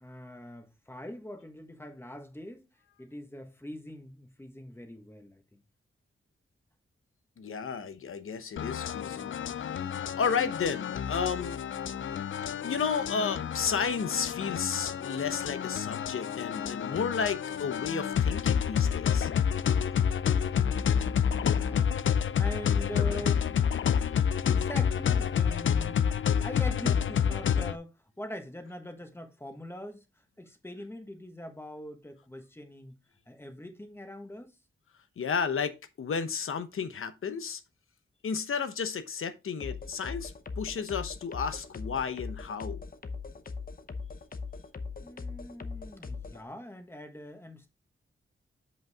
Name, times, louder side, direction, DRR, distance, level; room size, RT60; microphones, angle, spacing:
voice 1, 0.0-2.7 3.0-5.6 20.5-21.9 22.4-23.6 24.1-33.0 33.3-34.6 45.0-47.7, left 1 dB, 10° left, 1.4 m, -43 dB
voice 2, 7.4-9.8 10.2-11.6 12.6-19.3 23.9-24.1 35.2-37.6 38.2-42.8, left 6 dB, 90° left, 1.0 m, -33 dB
sound 1, 8.6-27.8, left 8 dB, 70° left, 0.5 m, -29 dB
sound 2, 39.6-46.4, left 4 dB, 45° left, 0.8 m, -40 dB
7.7 x 5.5 x 3.5 m
wide cardioid pair, 145°, 21 cm